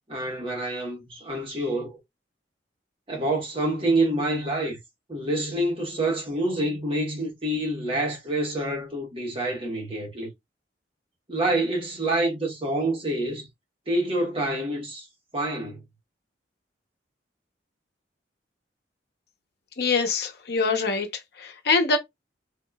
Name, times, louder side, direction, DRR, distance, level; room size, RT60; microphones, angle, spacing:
voice 1, 0.0-2.0 3.1-4.8 5.1-10.3 11.3-13.5 13.9-15.1 15.3-15.8, right 1 dB, 30° right, 1.2 m, -27 dB
voice 2, 19.8-22.0, left 4 dB, 60° left, 0.8 m, -24 dB
3.7 x 2.9 x 2.2 m
head